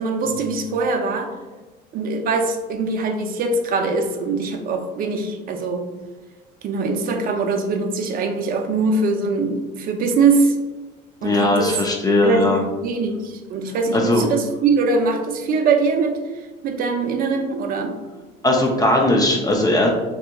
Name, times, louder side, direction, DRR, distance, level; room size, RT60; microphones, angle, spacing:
voice 1, 0.0-1.4 1.9-5.9 6.6-10.5 11.2-11.7 12.2-16.2 16.6-18.0, right 4 dB, 45° right, 5 dB, 0.5 m, -22 dB
voice 2, 11.2-12.6 13.9-14.3 18.4-19.9, left 2 dB, 20° left, 0 dB, 0.4 m, -18 dB
3.4 x 2.8 x 2.2 m, 1.2 s
cardioid pair, 120°, 21 cm